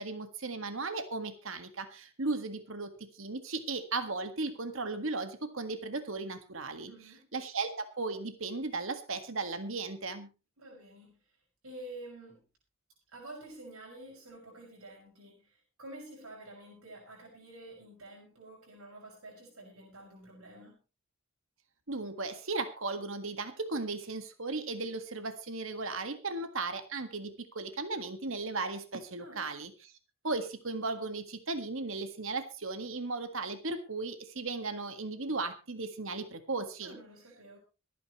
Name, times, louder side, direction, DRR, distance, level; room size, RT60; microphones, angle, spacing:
voice 1, 0.0-6.9 7.3-10.3 21.9-29.9 30.2-37.0, right 3 dB, 65° right, 8 dB, 1.8 m, -36 dB
voice 2, 6.9-7.3 10.6-11.2 11.6-12.4 13.1-20.8 29.2-29.4 36.8-37.6, right 1 dB, 80° right, -2 dB, 6.1 m, -49 dB
25.0 x 9.5 x 3.1 m, 0.31 s
head